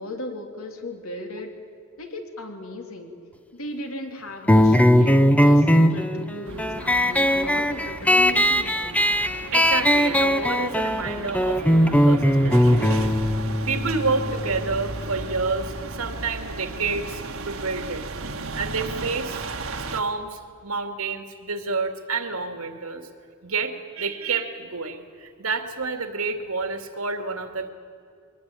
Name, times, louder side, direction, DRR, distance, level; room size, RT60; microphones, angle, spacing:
voice 1, 0.0-1.6 2.0-3.1 3.5-9.0, left 1 dB, 75° left, 3 dB, 3.3 m, -36 dB
sound 1, 4.5-15.6, equal, 5° left, 0.8 m, -20 dB
sound 2, 6.5-20.0, right 3 dB, 70° right, 1.6 m, -35 dB
voice 2, 9.5-12.7 13.7-18.1 18.5-19.5 19.9-23.1 23.4-27.7, right 4 dB, 85° right, 7 dB, 2.4 m, -29 dB
23.0 x 20.0 x 9.0 m, 2.3 s
head